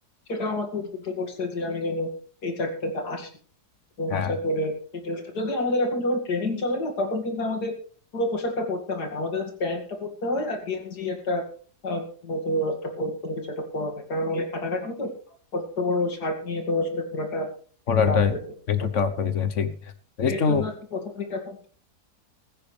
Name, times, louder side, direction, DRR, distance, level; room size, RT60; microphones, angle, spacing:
voice 1, 0.3-2.1 2.4-3.3 4.0-4.7 5.0-7.7 8.1-11.4 11.8-15.1 15.5-17.5 18.1-18.6 20.2-21.7, left 1 dB, 75° left, 4 dB, 2.9 m, -28 dB
voice 2, 17.9-18.3 18.7-19.7 20.2-20.7, left 6 dB, 55° left, 12 dB, 1.3 m, -23 dB
15.5 x 15.0 x 3.4 m, 0.43 s
omnidirectional pair, 1.7 m